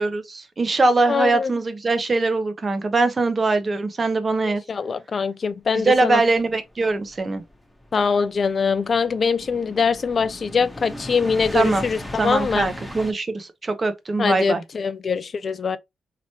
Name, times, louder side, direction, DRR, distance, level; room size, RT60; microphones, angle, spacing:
voice 1, 0.0-4.6 5.8-7.4 11.5-11.8 12.2-14.6, right 3 dB, 40° right, 0.8 m, -22 dB
voice 2, 1.1-1.5 4.4-6.2 7.9-12.7 14.2-15.8, left 5 dB, 50° left, 0.3 m, -23 dB
sound 1, 6.1-13.1, left 1 dB, 10° left, 1.0 m, -38 dB
3.1 x 2.9 x 2.8 m
supercardioid pair, 60°, 0 cm